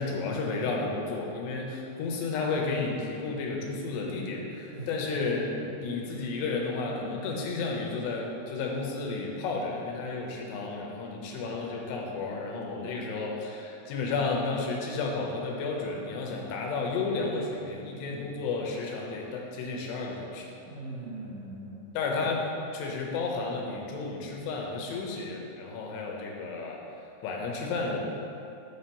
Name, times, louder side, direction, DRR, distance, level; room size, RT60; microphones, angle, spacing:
voice 1, 0.0-20.5 21.9-22.5 22.7-26.8 27.2-28.0, left 3 dB, 85° left, -1 dB, 2.9 m, -32 dB
voice 2, 20.7-21.8 22.1-22.2, right 2 dB, 55° right, -9 dB, 2.5 m, -41 dB
9.9 x 5.2 x 2.9 m, 2.7 s
omnidirectional pair, 4.8 m